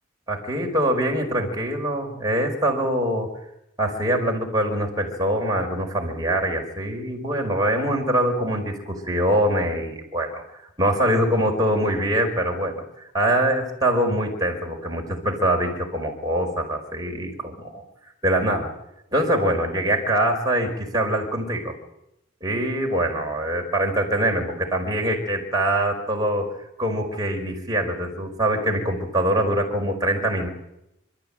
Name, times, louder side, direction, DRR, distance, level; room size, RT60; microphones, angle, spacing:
voice 1, 0.3-3.3 3.8-10.4 10.8-12.8 13.1-17.8 18.2-18.7 19.1-21.7 22.4-30.5, right 1 dB, 20° right, 0 dB, 5.4 m, -23 dB
29.0 x 14.0 x 9.1 m, 0.82 s
head